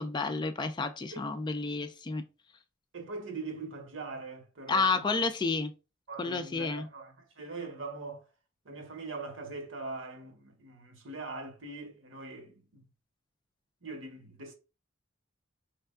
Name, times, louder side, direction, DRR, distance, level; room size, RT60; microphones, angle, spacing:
voice 1, 0.0-2.2 4.7-5.7 6.2-6.9, left 4 dB, 20° left, 0.3 m, -30 dB
voice 2, 2.9-5.1 6.1-8.3 8.6-12.8 13.8-14.6, right 3 dB, 65° right, 0.9 m, -42 dB
4.5 x 3.3 x 2.3 m
head